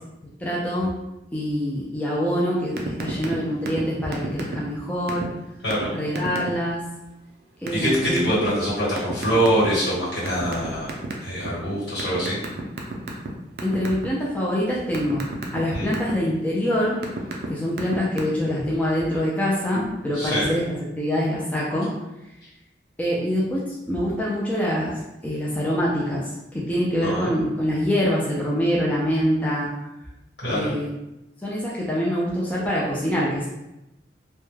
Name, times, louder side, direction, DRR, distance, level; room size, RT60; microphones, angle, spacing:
voice 1, 0.4-0.9 1.3-5.3 5.9-6.8 7.6-8.5 13.6-15.3 15.5-17.0 17.5-21.9 23.0-29.7 30.5-30.9 31.4-33.5, equal, 10° left, -6 dB, 0.3 m, -25 dB
sound 1, 2.8-3.4 3.7-3.8 4.1-4.8 5.1-5.3 5.7-5.8 6.2-6.5 7.7-8.3 9.0-9.8 10.3-11.5 12.0-13.3 13.6-14.1 14.5-16.1 16.7-17.5 17.7-18.2, right 3 dB, 60° right, 0.4 m, -31 dB
voice 2, 7.7-10.9 11.2-12.4 15.7-15.9 20.1-20.5 27.0-27.3 30.4-30.7, equal, 80° left, -8 dB, 1.4 m, -24 dB
2.2 x 2.1 x 3.1 m, 0.94 s
head